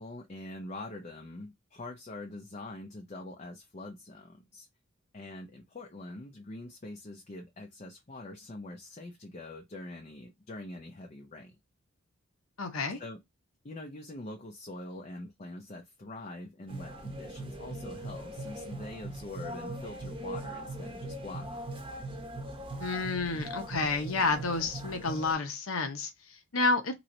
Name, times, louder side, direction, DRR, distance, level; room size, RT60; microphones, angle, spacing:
voice 1, 0.0-4.7 5.1-11.6 13.0-13.2 13.6-21.8, left 2 dB, 35° left, 0.5 m, -44 dB
voice 2, 12.6-13.0 22.8-26.9, left 3 dB, 90° left, 0.9 m, -30 dB
sound 1, 16.7-25.3, right 1 dB, 25° right, 0.9 m, -40 dB
3.1 x 3.0 x 2.6 m
head